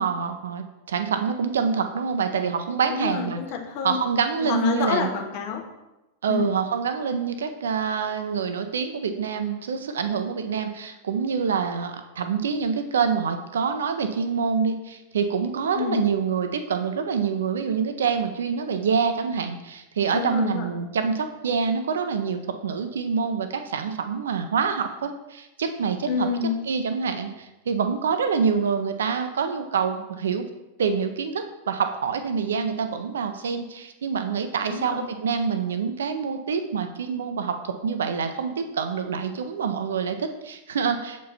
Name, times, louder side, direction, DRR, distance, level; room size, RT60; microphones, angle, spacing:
voice 1, 0.0-3.4 3.8-5.1 6.2-26.3 26.7-30.4 30.8-41.3, right 6 dB, 65° right, 8 dB, 0.6 m, -26 dB
voice 2, 2.9-4.0 4.4-5.6 6.3-6.5 15.7-16.0 20.1-20.7 26.1-26.6 34.7-35.1, left 7 dB, 45° left, 3 dB, 1.2 m, -28 dB
7.2 x 4.5 x 4.2 m, 0.99 s
figure-of-eight pair, 90°, 0 cm